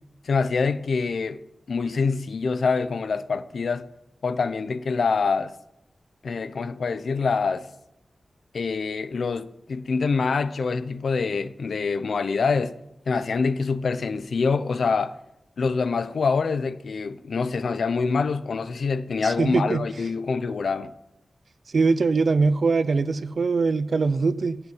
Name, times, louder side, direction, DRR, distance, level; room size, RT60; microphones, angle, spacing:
voice 1, 0.2-1.4 1.7-3.8 4.2-5.5 6.2-7.7 8.5-12.7 13.1-15.1 15.6-20.9, left 4 dB, 85° left, 0.8 m, -25 dB
voice 2, 19.2-19.8 21.7-24.6, right 4 dB, 65° right, 0.7 m, -22 dB
17.0 x 6.0 x 9.5 m
wide cardioid pair, 110°, 0 cm